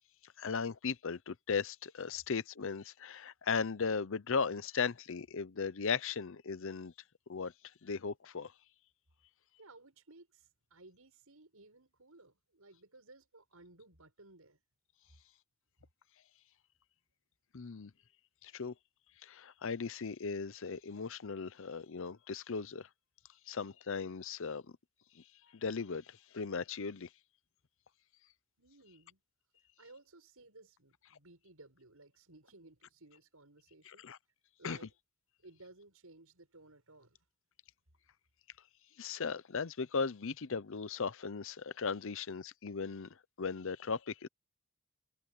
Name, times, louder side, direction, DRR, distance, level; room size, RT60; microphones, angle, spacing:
voice 1, 0.2-6.9 7.3-7.5 7.8-8.5 17.5-17.9 18.4-18.7 19.2-22.9 23.5-24.6 25.1-25.2 25.5-27.1 33.9-34.2 34.6-34.8 39.0-44.3, left 5 dB, 65° left, 0.7 m, -37 dB
voice 2, 9.6-14.6 28.6-29.2 29.8-34.2 34.6-34.9 35.4-37.2, right 2 dB, 90° right, 6.7 m, -58 dB
head